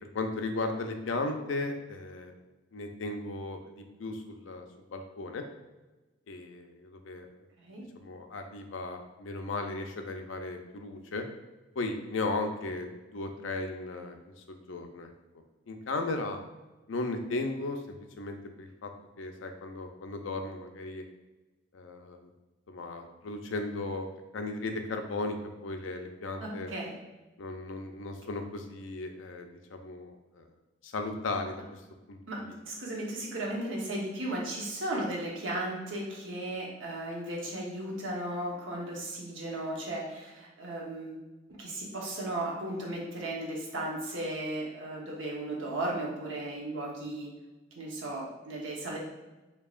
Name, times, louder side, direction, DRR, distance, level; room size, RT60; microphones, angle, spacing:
voice 1, 0.0-2.3 2.7-5.4 6.3-7.3 8.0-11.2 11.8-14.2 14.5-15.1 15.7-16.4 16.9-18.9 19.2-21.0 21.7-22.2 22.7-24.1 24.3-25.4 25.6-26.7 27.4-30.5 30.8-31.8 32.1-32.2 32.5-32.6, left 2 dB, 85° left, 5 dB, 0.5 m, -36 dB
voice 2, 26.4-27.0 32.3-32.4 32.7-41.2 41.6-47.3 47.7-49.0, right 1 dB, 85° right, -3 dB, 1.0 m, -35 dB
4.5 x 2.8 x 2.4 m, 1.1 s
head